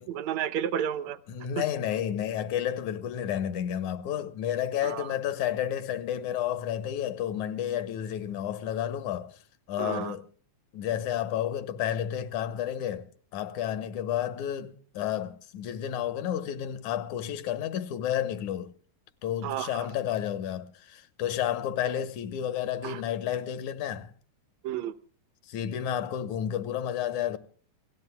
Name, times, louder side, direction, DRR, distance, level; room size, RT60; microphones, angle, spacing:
voice 1, 0.0-1.2 1.6-1.7 4.8-5.2 9.8-10.1 19.4-19.9 22.8-23.0 24.6-24.9, right 10 dB, 70° right, 2.0 m, -32 dB
voice 2, 1.3-9.4 9.7-10.2 10.7-18.7 19.2-24.1 25.5-27.4, left 10 dB, 75° left, 2.3 m, -31 dB
29.0 x 18.0 x 2.2 m
omnidirectional pair, 3.5 m